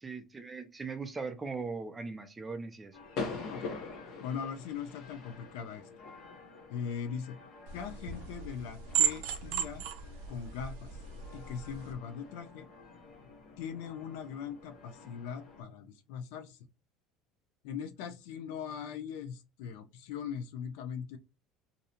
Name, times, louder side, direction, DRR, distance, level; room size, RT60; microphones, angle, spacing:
voice 1, 0.0-3.0, right 4 dB, 15° right, 0.3 m, -39 dB
sound 1, 2.9-15.6, left 4 dB, 50° left, 0.8 m, -46 dB
voice 2, 4.2-5.9 6.7-7.4 7.7-9.9 10.3-10.9 11.3-12.7 13.6-16.6 17.6-21.2, left 7 dB, 85° left, 0.4 m, -40 dB
sound 2, 7.7-11.9, right 9 dB, 85° right, 0.4 m, -35 dB
2.6 x 2.0 x 2.8 m
cardioid pair, 160°, 0 cm